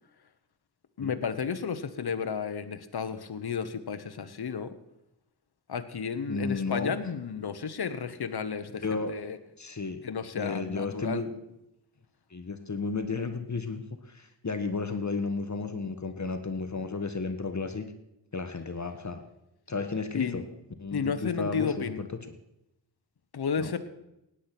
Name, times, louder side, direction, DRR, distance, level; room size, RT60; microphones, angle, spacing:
voice 1, 1.0-4.8 5.7-9.4 10.0-11.2 20.1-20.4 20.9-22.0 23.3-23.8, left 6 dB, 60° left, 10 dB, 1.2 m, -32 dB
voice 2, 6.3-7.0 8.8-9.2 9.6-10.0 10.4-11.3 12.3-17.8 18.3-19.2 19.7-20.4 20.8-22.1 23.6-23.7, left 4 dB, 40° left, 7 dB, 1.4 m, -33 dB
17.0 x 10.0 x 6.0 m, 0.88 s
cardioid pair, 55°, 44 cm